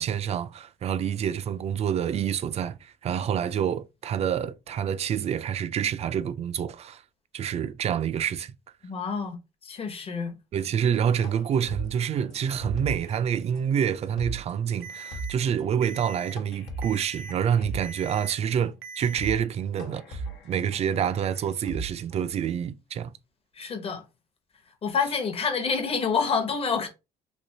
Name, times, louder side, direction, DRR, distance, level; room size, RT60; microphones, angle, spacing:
voice 1, 0.0-7.0 7.3-8.5 10.5-23.1, right 8 dB, 40° right, 0.3 m, -27 dB
voice 2, 8.8-9.4 9.6-10.3 23.6-24.0 24.8-26.9, left 5 dB, 35° left, 0.8 m, -27 dB
sound 1, 11.2-13.2 13.5-13.6 14.0-14.5 14.8-14.9 15.1-15.6 16.4-18.2 18.7-18.8 19.0-19.5 19.8-22.3, right 2 dB, 80° left, 0.9 m, -38 dB
Alarm, 14.8-15.3 15.8-16.3 16.8-17.3 17.8-18.3 18.8-19.3, right 4 dB, 75° right, 0.6 m, -41 dB
3.3 x 2.8 x 2.7 m
cardioid pair, 110°, 17 cm